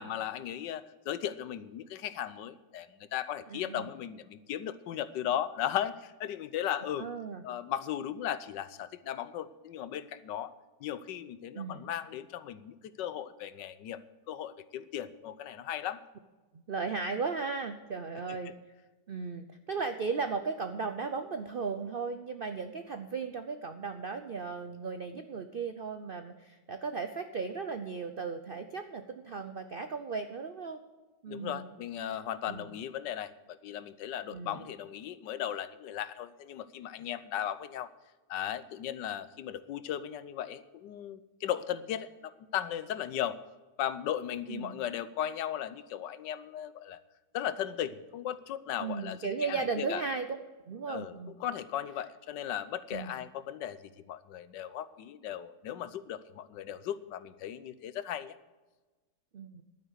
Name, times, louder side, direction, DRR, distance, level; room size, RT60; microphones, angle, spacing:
voice 1, 0.0-7.1 7.4-10.5 10.8-16.0 18.3-18.5 31.3-37.9 38.3-43.4 43.8-47.0 47.3-50.0 50.9-58.4, left 10 dB, 90° left, 14 dB, 1.4 m, -37 dB
voice 2, 3.5-3.9 7.0-7.4 11.5-11.8 16.7-18.5 19.1-30.8 31.2-31.7 32.5-32.7 34.3-34.6 44.5-44.8 48.8-50.3 50.7-51.3 52.9-53.1 59.3-59.6, right 4 dB, 65° right, 8 dB, 0.5 m, -36 dB
11.5 x 9.4 x 6.3 m, 1.2 s
omnidirectional pair, 1.9 m